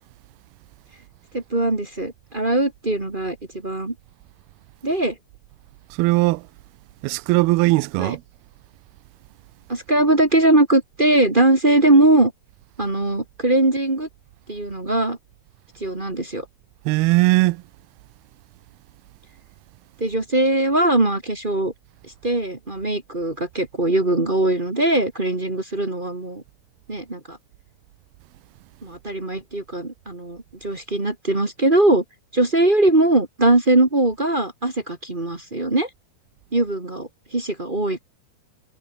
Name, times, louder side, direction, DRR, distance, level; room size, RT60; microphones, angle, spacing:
voice 1, 1.3-3.4 3.6-3.9 4.8-5.1 8.0-8.1 9.7-12.3 12.8-14.1 14.5-15.2 15.8-16.4 20.0-21.7 22.0-26.4 26.9-27.4 28.8-32.0 32.3-35.9 36.5-38.0, right 2 dB, 25° right, 1.2 m, -20 dB
voice 2, 6.0-6.4 7.0-8.2 16.9-17.6, right 21 dB, 80° right, 2.5 m, -19 dB
omnidirectional pair, 4.6 m